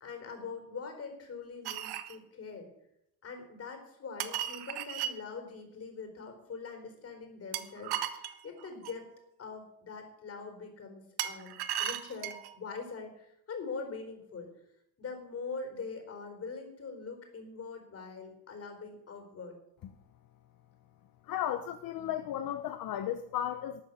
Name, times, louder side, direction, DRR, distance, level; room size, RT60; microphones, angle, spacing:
voice 1, 0.0-2.7 3.2-9.0 9.4-14.5 15.0-19.6, left 4 dB, 40° left, 4 dB, 4.2 m, -43 dB
sound 1, 1.6-2.2 4.2-5.1 7.5-9.0 11.2-12.5, right 11 dB, 80° right, 1.3 m, -36 dB
voice 2, 21.2-23.8, left 11 dB, 60° left, 9 dB, 1.0 m, -34 dB
12.5 x 9.1 x 7.3 m, 0.81 s
cardioid pair, 125°, 38 cm